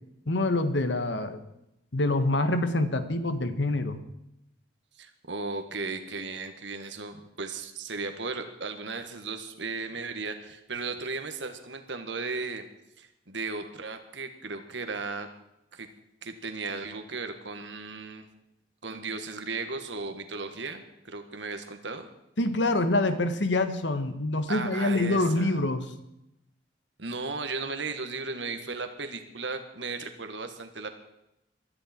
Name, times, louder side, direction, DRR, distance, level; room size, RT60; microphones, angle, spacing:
voice 1, 0.3-1.4 1.9-4.0 22.4-25.9, left 2 dB, 80° left, 9 dB, 1.5 m, -26 dB
voice 2, 5.0-12.6 13.0-15.3 15.7-15.9 16.2-18.3 18.8-22.1 24.5-25.6 27.0-30.9, right 4 dB, 85° right, 7 dB, 1.8 m, -36 dB
21.5 x 13.5 x 4.5 m, 0.84 s
head